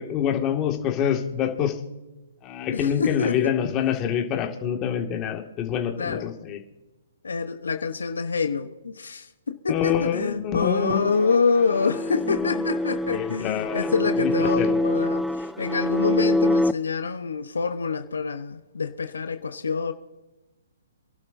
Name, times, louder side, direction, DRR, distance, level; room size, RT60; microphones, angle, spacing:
voice 1, 0.0-1.8 2.4-6.6 9.7-11.1 12.3-12.7 13.1-13.9 14.2-14.8, left 9 dB, 25° left, 2.0 m, -26 dB
voice 2, 2.7-3.5 6.0-6.3 7.2-19.9, left 5 dB, 80° left, 1.0 m, -26 dB
sound 1, 10.8-16.7, left 1 dB, ahead, 0.4 m, -25 dB
27.5 x 12.0 x 2.7 m
hypercardioid pair, 130°, 0 cm